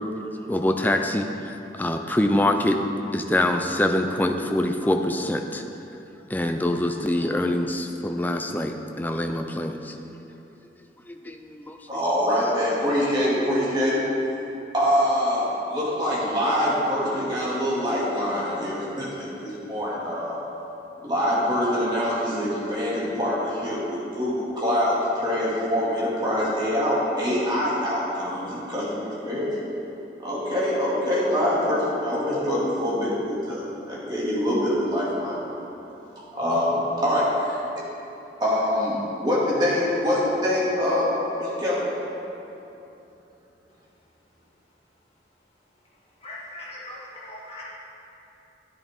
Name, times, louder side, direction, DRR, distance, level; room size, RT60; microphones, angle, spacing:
voice 1, 0.5-1.3 1.7-2.8 3.1-5.6 6.3-9.9 11.1-12.0, left 1 dB, 10° left, 5 dB, 0.4 m, -25 dB
voice 2, 11.9-14.0 14.7-20.4 21.0-29.5 30.2-35.4 36.3-37.6 38.4-41.1 41.4-41.8, left 1 dB, 25° right, -8 dB, 2.4 m, -24 dB
voice 3, 46.2-47.6, left 1 dB, 35° left, -7 dB, 2.1 m, -40 dB
10.5 x 10.5 x 3.6 m, 2.9 s
head